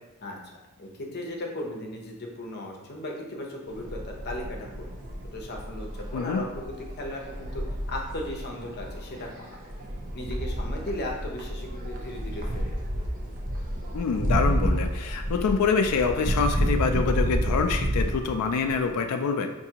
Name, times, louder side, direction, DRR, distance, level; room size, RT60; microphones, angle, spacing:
voice 1, 0.2-4.7 5.3-9.9 10.1-12.7, left 1 dB, 50° left, 0 dB, 0.7 m, -37 dB
sound 1, 3.7-18.9, equal, 40° right, 0.5 m, -30 dB
voice 2, 13.9-19.5, left 5 dB, 85° left, 5 dB, 0.3 m, -26 dB
4.8 x 2.6 x 2.8 m, 1.0 s
head